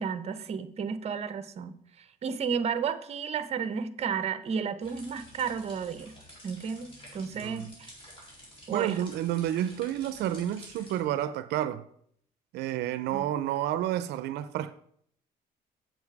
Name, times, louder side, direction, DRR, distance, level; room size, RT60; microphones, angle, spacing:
voice 1, 0.0-1.7 2.2-6.1 6.4-7.9 8.7-9.0 13.1-13.2, right 6 dB, 40° right, 0.8 m, -32 dB
sound 1, 4.8-11.0, equal, 30° left, 4.0 m, -50 dB
voice 2, 7.3-7.7 8.7-11.8 12.5-14.7, right 12 dB, 80° right, 0.5 m, -30 dB
7.7 x 7.1 x 4.7 m
cardioid pair, 110°, 17 cm